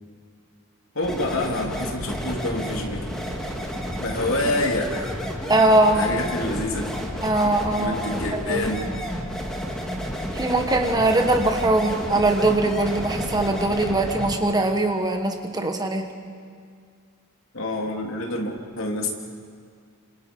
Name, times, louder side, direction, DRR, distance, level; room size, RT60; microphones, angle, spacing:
voice 1, 0.9-3.1 4.0-5.1 5.9-6.9 7.8-8.9 17.5-19.1, left 2 dB, 65° left, 1 dB, 3.2 m, -27 dB
sound 1, 1.0-14.4, equal, 5° left, 2.6 m, -31 dB
voice 2, 5.5-6.1 7.2-8.6 10.3-16.1, right 2 dB, 20° right, 5 dB, 1.4 m, -21 dB
28.5 x 26.5 x 5.4 m, 2.1 s
head